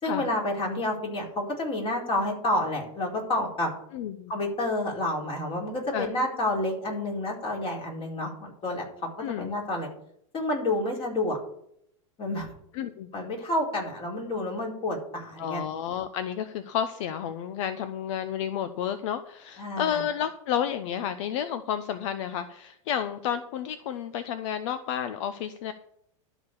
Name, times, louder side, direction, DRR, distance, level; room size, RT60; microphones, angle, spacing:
voice 1, 0.0-3.7 4.3-8.8 9.3-9.9 10.3-11.4 12.2-12.5 13.1-15.6 19.6-20.0, left 1 dB, 30° left, -1 dB, 4.5 m, -29 dB
voice 2, 3.9-4.3 5.9-6.1 9.2-9.5 12.7-13.1 15.4-25.7, left 9 dB, 65° left, 11 dB, 0.8 m, -31 dB
12.5 x 5.0 x 7.2 m, 0.71 s
hypercardioid pair, 115°, 17 cm